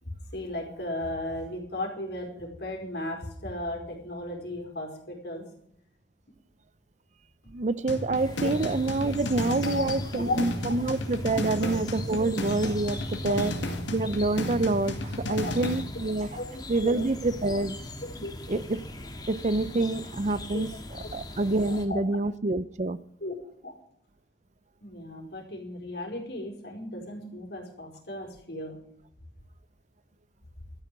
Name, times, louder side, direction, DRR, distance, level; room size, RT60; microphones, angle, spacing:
voice 1, 0.0-5.5 8.4-8.5 9.6-10.4 10.7-10.8 11.4-11.7 13.2-13.4 15.3-15.5 16.3-17.0 18.2-18.3 20.5-20.7 21.0-21.1 21.9-22.0 23.2-23.4 23.6-23.7 24.8-28.8, left 1 dB, 60° left, 1 dB, 4.5 m, -36 dB
voice 2, 7.5-13.5 13.9-16.3 16.7-17.7 18.5-18.8 19.3-20.7 21.1-23.0, right 2 dB, 40° right, 16 dB, 0.5 m, -27 dB
sound 1, 7.9-15.9, left 1 dB, 80° left, 2.2 m, -33 dB
sound 2, 8.1-21.9, left 1 dB, 20° left, 1.7 m, -40 dB
13.0 x 9.9 x 6.6 m, 0.68 s
head